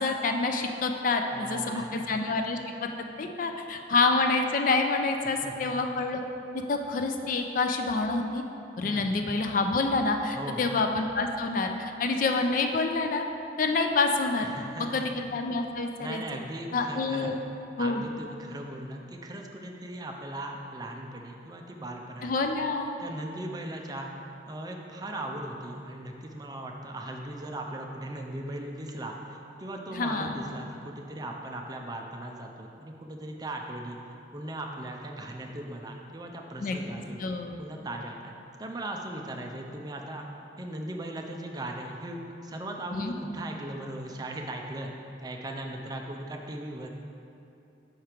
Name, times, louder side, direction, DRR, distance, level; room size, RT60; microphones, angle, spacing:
voice 1, 0.0-2.9 3.2-6.2 6.7-8.4 8.8-13.2 13.6-14.5 14.9-16.2 16.7-17.4 17.8-18.0 22.2-22.9 29.9-30.4 36.6-36.8 37.2-37.6 42.9-43.2, left 3 dB, 50° left, 5 dB, 0.4 m, -27 dB
voice 2, 1.3-2.1 5.4-5.7 8.8-9.1 10.3-10.7 14.4-15.1 15.8-17.4 17.8-22.5 23.0-24.1 24.5-34.0 34.3-37.2 37.6-38.3 38.6-40.3 40.6-44.9 45.2-46.9, right 1 dB, 20° right, 1 dB, 0.5 m, -38 dB
5.7 x 4.4 x 5.0 m, 2.7 s
head